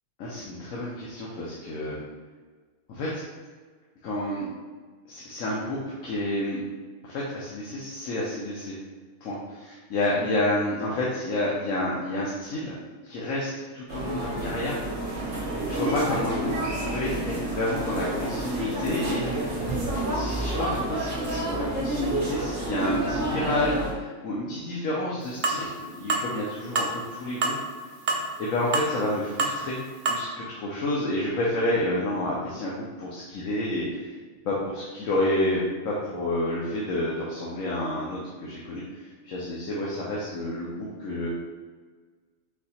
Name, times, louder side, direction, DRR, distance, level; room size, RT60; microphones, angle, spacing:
voice 1, 0.2-2.0 2.9-3.2 4.0-4.5 5.1-6.6 7.0-8.8 9.2-9.6 9.9-12.7 13.0-14.8 15.7-27.5 28.4-29.8 30.0-34.2 34.4-41.3, left 1 dB, 80° left, -5 dB, 1.1 m, -29 dB
sound 1, 13.9-23.9, right 1 dB, 40° right, 1.1 m, -29 dB
sound 2, 25.4-25.6 26.1-26.3 26.8-26.9 27.4-27.6 28.1-28.3 28.7-28.9 29.4-29.6 30.1-30.2, right 3 dB, 70° right, 0.4 m, -25 dB
4.1 x 2.8 x 4.2 m, 1.5 s
omnidirectional pair, 1.4 m